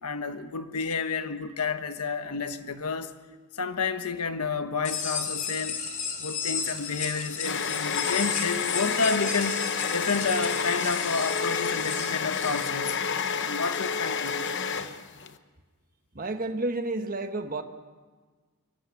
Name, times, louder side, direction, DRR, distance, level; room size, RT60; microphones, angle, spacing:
voice 1, 0.0-3.1 3.5-5.8 6.2-9.6 9.9-13.1 13.4-14.5, left 4 dB, 90° left, 1.3 m, -30 dB
sound 1, 4.8-12.7, left 6 dB, 35° left, 2.8 m, -34 dB
sound 2, 6.6-15.3, left 6 dB, 55° left, 1.0 m, -30 dB
voice 2, 16.1-17.6, right 2 dB, 40° right, 1.3 m, -30 dB
23.5 x 14.5 x 9.6 m
head